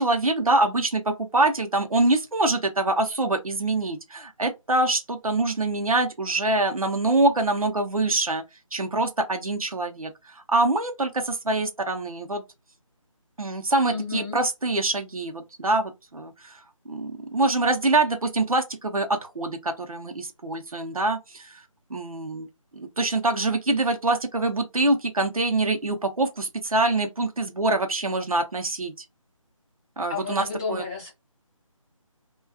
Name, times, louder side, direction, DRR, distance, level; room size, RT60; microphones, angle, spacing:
voice 1, 0.0-8.4 8.7-10.1 10.5-12.4 13.4-16.6 16.9-21.5 21.9-22.5 22.8-28.9 30.0-30.8, right 2 dB, 85° right, 0.7 m, -25 dB
voice 2, 13.9-14.4 30.1-31.1, left 5 dB, 5° left, 0.4 m, -32 dB
2.3 x 2.3 x 2.5 m
figure-of-eight pair, 155°, 18 cm